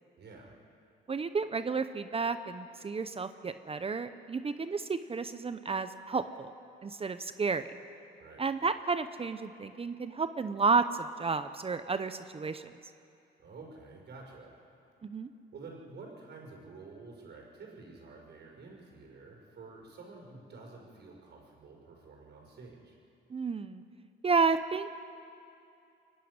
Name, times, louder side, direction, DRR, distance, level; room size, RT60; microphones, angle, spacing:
voice 1, 0.2-0.6 8.2-8.4 13.4-14.5 15.5-23.0, right 3 dB, 60° right, -1 dB, 5.4 m, -50 dB
voice 2, 1.1-6.5 6.8-7.7 8.4-12.7 15.0-15.3 23.3-23.8 24.2-24.9, right 4 dB, 30° right, 11 dB, 0.7 m, -31 dB
24.0 x 11.0 x 9.7 m, 2.6 s
cardioid pair, 90°, 20 cm